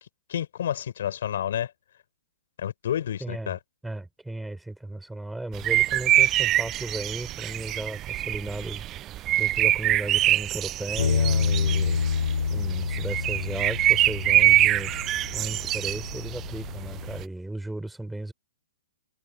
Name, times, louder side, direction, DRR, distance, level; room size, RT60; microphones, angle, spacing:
voice 1, 0.3-1.7 2.6-3.6, left 10 dB, 65° left, 4.7 m, -29 dB
voice 2, 3.2-3.5 3.8-14.9 15.3-18.3, right 2 dB, 5° right, 5.0 m, -36 dB
sound 1, 5.5-17.2, right 14 dB, 25° right, 0.4 m, -24 dB
Bass guitar, 11.0-17.2, left 6 dB, 90° left, 3.7 m, -28 dB
hypercardioid pair, 135°, 0 cm